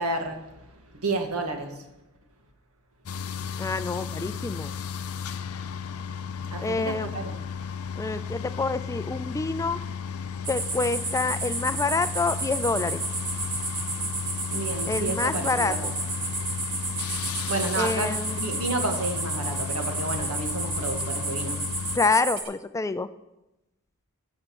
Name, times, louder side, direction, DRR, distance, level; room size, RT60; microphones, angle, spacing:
voice 1, 0.0-1.9 6.5-7.4 14.5-15.9 17.5-21.6, right 2 dB, 80° right, 4 dB, 1.8 m, -31 dB
sound 1, 3.1-22.0, left 6 dB, 75° left, 0.6 m, -34 dB
voice 2, 3.6-4.7 6.6-7.1 8.0-9.8 10.5-13.0 14.9-15.7 17.8-18.4 21.9-23.1, left 3 dB, 15° left, 12 dB, 0.3 m, -27 dB
sound 2, 10.4-22.4, right 3 dB, 40° right, 2.8 m, -32 dB
15.5 x 5.5 x 7.0 m, 0.97 s
head